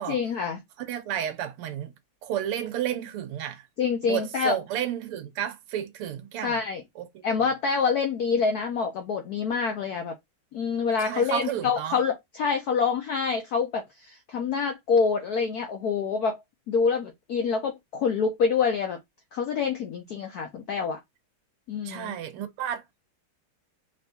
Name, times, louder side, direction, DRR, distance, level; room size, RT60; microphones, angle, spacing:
voice 1, 0.1-0.6 3.8-4.6 6.4-6.8 7.2-10.1 10.5-16.4 16.7-19.0 19.3-21.0 21.7-22.1, left 5 dB, 80° left, 0.8 m, -26 dB
voice 2, 0.8-1.9 2.2-3.7 4.0-6.6 7.0-7.2 11.0-12.0 21.8-22.8, right 10 dB, 90° right, 1.6 m, -32 dB
3.8 x 3.3 x 2.7 m
omnidirectional pair, 2.4 m